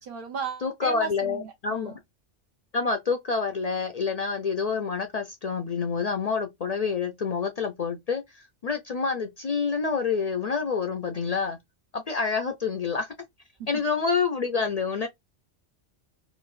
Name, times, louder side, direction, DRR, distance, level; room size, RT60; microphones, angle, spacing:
voice 1, 0.0-2.0 13.6-13.7, right 6 dB, 55° right, 0.7 m, -36 dB
voice 2, 0.6-1.9 2.7-11.6 11.9-13.1 13.7-15.1, left 5 dB, 65° left, 0.4 m, -27 dB
3.9 x 2.5 x 2.3 m
omnidirectional pair, 1.2 m